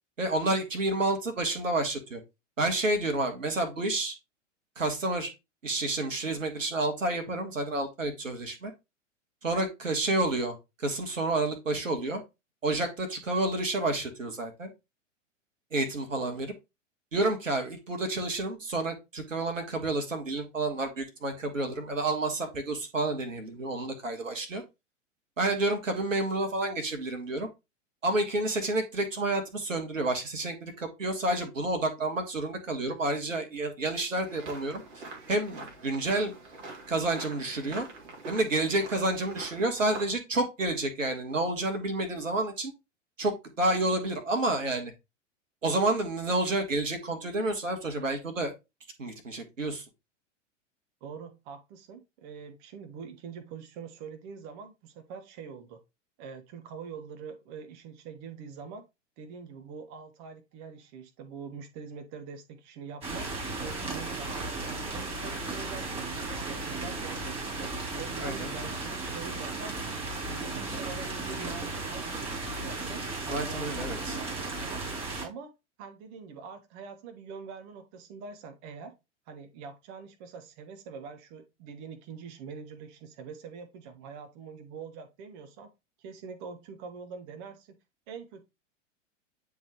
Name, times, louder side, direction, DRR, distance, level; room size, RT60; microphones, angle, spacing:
voice 1, 0.2-2.2 2.6-4.2 4.8-5.3 5.6-8.7 9.4-12.2 12.6-14.7 15.7-16.5 17.1-24.6 25.4-27.5 28.0-34.8 35.3-36.3 36.9-37.9 38.3-42.7 43.2-44.9 45.6-48.5 49.0-49.9 68.2-68.5 70.7-70.8 73.2-74.2, right 2 dB, 80° right, 1.7 m, -29 dB
sound 1, 34.2-40.1, right 2 dB, 65° right, 2.3 m, -45 dB
voice 2, 51.0-55.8 56.2-58.8 59.2-67.7 68.0-70.0 70.3-74.8 75.2-75.5 75.8-78.9 79.3-85.7 86.0-87.8 88.1-88.4, right 5 dB, 40° right, 1.2 m, -44 dB
sound 2, 63.0-75.3, right 3 dB, 15° right, 3.2 m, -35 dB
9.2 x 3.7 x 3.0 m
figure-of-eight pair, 95°, 38 cm